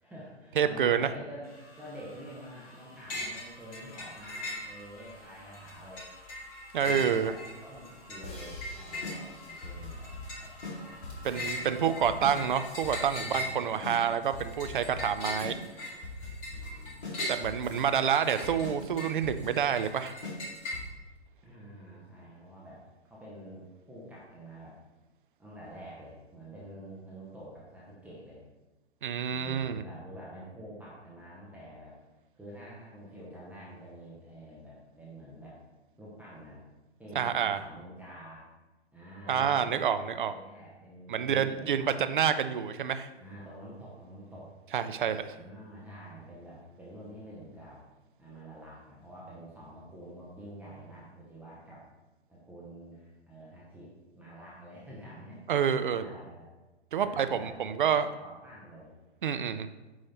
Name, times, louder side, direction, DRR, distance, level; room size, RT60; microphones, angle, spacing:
voice 1, 0.0-1.4 1.8-6.1 6.8-10.1 10.4-11.7 13.2-14.0 16.4-17.1 21.4-24.8 25.4-28.4 29.3-31.9 32.3-35.6 36.0-36.6 37.0-38.5 38.9-39.9 40.3-41.9 43.2-44.6 45.3-47.8 48.2-51.9 52.3-55.4 56.0-56.5 57.0-57.8 58.2-58.9, right 1 dB, 5° right, -7 dB, 0.9 m, -48 dB
voice 2, 0.6-1.1 6.7-7.3 11.2-15.6 17.3-20.1 29.0-29.8 37.1-37.6 39.3-40.3 41.1-43.1 44.7-45.4 55.5-56.1 56.9-58.1 59.2-59.7, right 8 dB, 50° right, 10 dB, 0.5 m, -28 dB
sound 1, 1.4-12.8, left 1 dB, 60° left, 2.2 m, -54 dB
sound 2, 3.1-5.1 5.5-20.8, left 1 dB, 25° left, 1.7 m, -40 dB
sound 3, 8.2-21.1, left 2 dB, 40° left, 2.0 m, -42 dB
9.3 x 3.2 x 4.2 m, 1.1 s
figure-of-eight pair, 120°, 33 cm